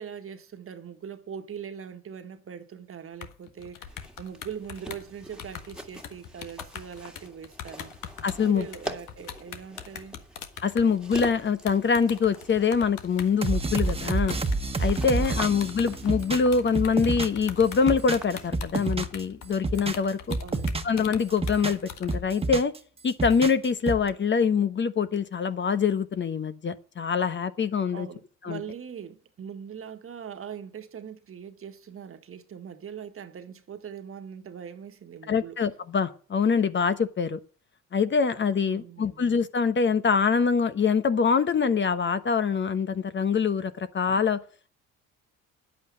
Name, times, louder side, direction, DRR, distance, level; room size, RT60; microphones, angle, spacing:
voice 1, 0.0-7.9 8.4-10.2 14.9-15.5 20.4-20.7 27.9-35.6 38.6-39.3, right 8 dB, 45° right, 1.6 m, -41 dB
sound 1, 3.2-22.2, left 9 dB, 75° left, 1.6 m, -42 dB
sound 2, 3.8-18.5, right 1 dB, 5° right, 2.1 m, -45 dB
voice 2, 8.2-8.7 10.6-14.4 14.8-20.4 20.8-22.7 23.0-28.1 28.4-28.6 35.3-37.4 37.9-44.4, left 5 dB, 35° left, 1.1 m, -24 dB
sound 3, 13.4-17.5 17.7-19.2 19.5-21.0 21.3-22.8 23.1-24.1, right 3 dB, 20° right, 1.3 m, -29 dB
10.0 x 8.4 x 8.8 m
cardioid pair, 90°, 31 cm